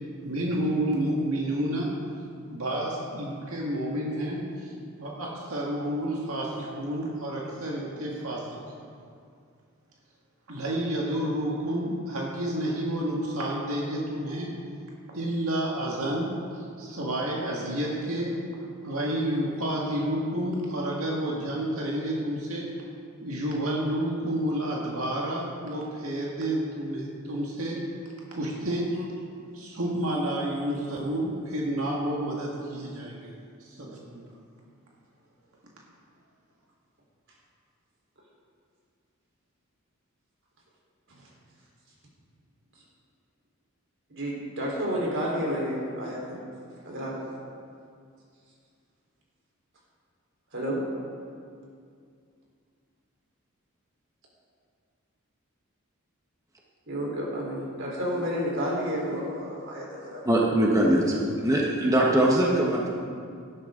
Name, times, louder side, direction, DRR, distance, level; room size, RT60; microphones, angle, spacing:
voice 1, 0.2-1.9 2.5-4.7 5.0-8.9 10.5-14.5 15.1-18.4 18.8-22.7 23.2-27.8 28.3-28.9 29.5-33.4 33.6-34.2, right 1 dB, 80° right, -3 dB, 1.9 m, -30 dB
voice 2, 44.1-46.4 46.8-47.2 50.5-50.8 56.9-60.2 61.0-61.1 61.4-61.5, equal, 60° right, -4 dB, 4.0 m, -31 dB
voice 3, 60.2-62.9, right 1 dB, 15° right, -3 dB, 1.2 m, -22 dB
18.0 x 12.0 x 3.8 m, 2.3 s
head